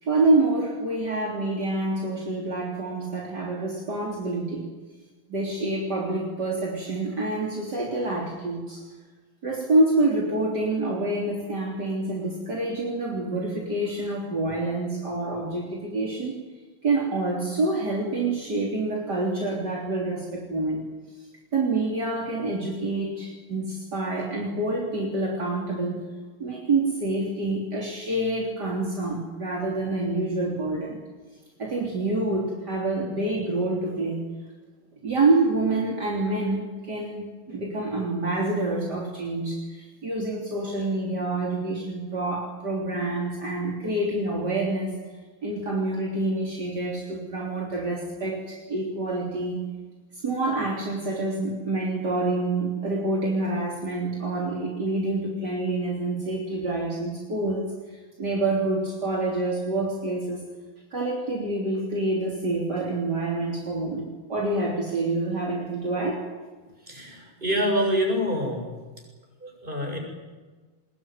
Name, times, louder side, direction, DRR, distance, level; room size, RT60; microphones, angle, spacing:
voice 1, 0.0-4.7 5.3-8.9 9.4-16.5 16.8-20.8 21.5-26.0 26.4-31.0 31.6-34.2 35.0-45.0 45.4-49.6 50.1-60.4 60.9-66.3, right 2 dB, 55° right, -2 dB, 4.1 m, -27 dB
voice 2, 66.8-68.7 69.4-70.0, equal, 25° right, 1 dB, 7.3 m, -26 dB
23.5 x 21.0 x 9.5 m, 1.3 s
omnidirectional pair, 2.2 m